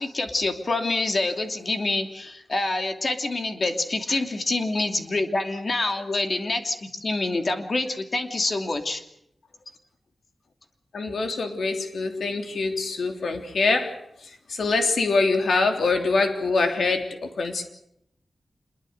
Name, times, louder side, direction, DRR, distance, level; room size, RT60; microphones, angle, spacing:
voice 1, 0.0-9.0, left 2 dB, 45° left, 5 dB, 2.8 m, -26 dB
voice 2, 10.9-13.9 14.5-17.6, left 3 dB, 85° left, 5 dB, 3.2 m, -24 dB
26.5 x 22.0 x 6.7 m, 0.77 s
wide cardioid pair, 115°, 0 cm